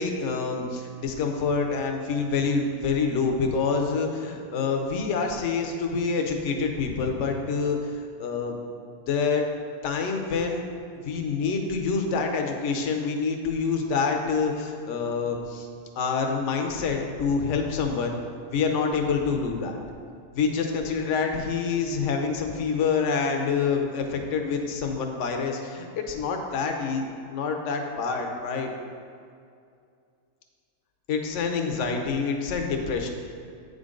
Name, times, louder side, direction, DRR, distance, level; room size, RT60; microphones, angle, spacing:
voice 1, 0.0-7.8 8.2-8.6 9.1-9.5 9.8-10.6 11.0-15.7 16.0-18.1 18.5-19.8 20.3-28.7 31.1-33.1, left 5 dB, 60° left, 3 dB, 1.0 m, -27 dB
8.9 x 5.2 x 3.8 m, 2.3 s
omnidirectional pair, 1.6 m